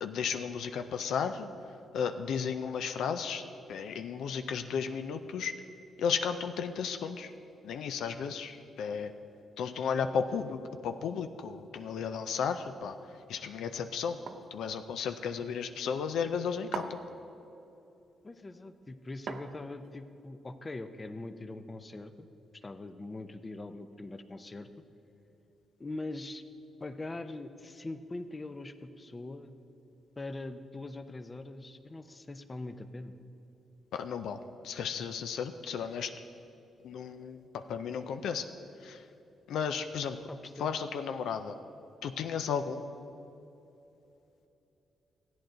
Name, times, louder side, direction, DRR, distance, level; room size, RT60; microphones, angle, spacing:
voice 1, 0.0-1.5 1.9-3.4 3.7-5.5 6.0-7.3 7.6-9.1 9.6-13.0 13.3-14.2 14.5-17.0 33.9-36.1 36.8-38.5 38.8-39.0 39.5-40.2 40.6-41.6 42.0-42.8, left 6 dB, 80° left, 8 dB, 0.4 m, -34 dB
sound 1, 14.3-14.6 16.7-17.2 19.3-19.9, right 5 dB, 65° right, 0.6 m, -40 dB
voice 2, 18.2-22.3 22.5-24.7 25.8-26.4 26.8-29.5 30.2-33.2 40.3-40.7, left 2 dB, 30° left, 10 dB, 0.6 m, -42 dB
14.0 x 9.3 x 3.9 m, 2.9 s
cardioid pair, 75°, 0 cm